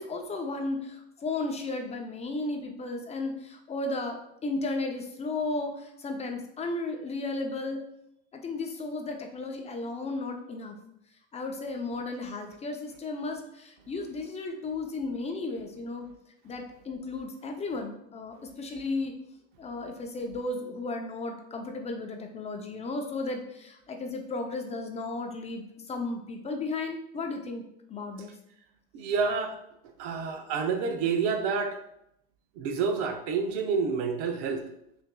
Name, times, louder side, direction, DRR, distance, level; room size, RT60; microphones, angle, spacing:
voice 1, 0.0-7.8 8.3-10.8 11.3-16.1 16.4-19.1 19.6-27.6 27.9-28.3, left 3 dB, 20° left, 4 dB, 0.5 m, -34 dB
voice 2, 28.9-29.6 30.0-31.8 32.6-34.6, right 5 dB, 65° right, 6 dB, 0.7 m, -28 dB
5.7 x 2.6 x 2.2 m, 0.79 s
supercardioid pair, 105°, 29 cm